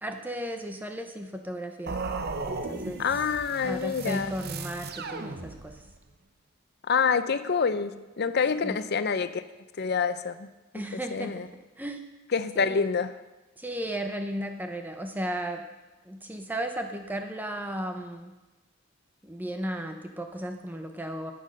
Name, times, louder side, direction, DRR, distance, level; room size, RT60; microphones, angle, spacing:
voice 1, 0.0-1.9 2.5-3.0 3.6-5.8 8.6-8.8 10.7-11.5 11.8-12.0 12.6-12.8 13.6-15.7 16.1-18.3 19.2-21.3, right 1 dB, 10° right, 5 dB, 0.6 m, -35 dB
sound 1, 1.9-6.0, right 3 dB, 50° right, 0.7 m, -36 dB
voice 2, 3.0-4.3 6.9-9.4 9.8-10.5 10.9-11.5 12.3-13.1, left 5 dB, 50° left, 12 dB, 0.5 m, -27 dB
9.6 x 8.5 x 6.3 m, 1.1 s
head